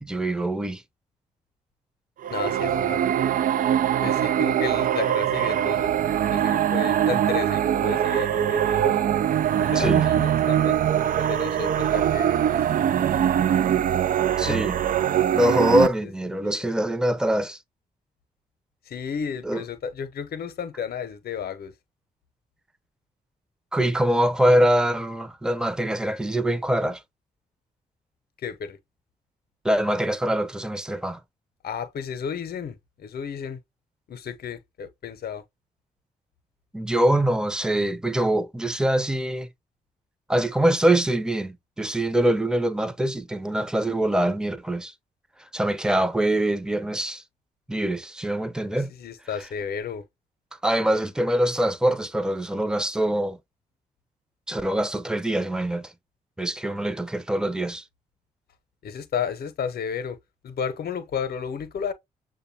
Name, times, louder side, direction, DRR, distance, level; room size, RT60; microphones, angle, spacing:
voice 1, 0.0-0.8 9.7-10.0 14.4-14.7 15.3-17.6 19.4-19.6 23.7-27.0 29.6-31.2 36.7-39.5 40.3-44.9 45.5-47.2 47.7-48.9 50.6-53.4 54.5-55.9 56.4-57.8, right 1 dB, 5° right, 0.7 m, -24 dB
sound 1, 2.2-15.9, right 10 dB, 50° right, 0.4 m, -22 dB
voice 2, 2.3-3.5 4.0-9.0 9.6-10.8 11.2-13.1 14.5-14.6 15.8-16.1 16.4-16.7 18.9-21.7 28.4-28.8 31.6-33.6 34.1-35.4 48.7-50.1 58.8-60.2 60.4-61.9, left 7 dB, 60° left, 0.8 m, -33 dB
6.6 x 2.3 x 2.7 m
hypercardioid pair, 40°, 18 cm